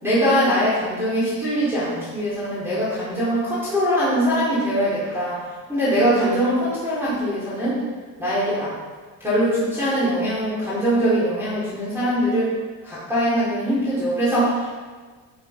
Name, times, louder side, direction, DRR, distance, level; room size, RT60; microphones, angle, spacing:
voice 1, 0.0-5.4 5.7-7.8 8.2-8.7 9.2-12.5 12.8-14.7, equal, 5° right, -11 dB, 4.7 m, -22 dB
11.5 x 10.5 x 5.5 m, 1.4 s
cardioid pair, 145°, 39 cm